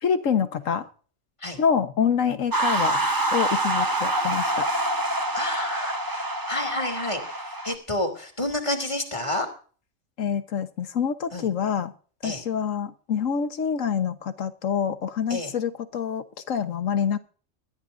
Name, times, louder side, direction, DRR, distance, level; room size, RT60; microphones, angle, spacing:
voice 1, 0.0-0.9 1.6-4.7 10.2-11.9 12.2-17.2, left 7 dB, 85° left, 10 dB, 1.5 m, -26 dB
sound 1, 2.5-7.7, right 1 dB, 15° right, 1.2 m, -26 dB
voice 2, 5.3-9.5 11.3-11.5 12.2-12.4 15.3-15.5, left 1 dB, 25° left, 5 dB, 3.0 m, -30 dB
21.0 x 14.0 x 2.6 m, 0.41 s
omnidirectional pair, 1.3 m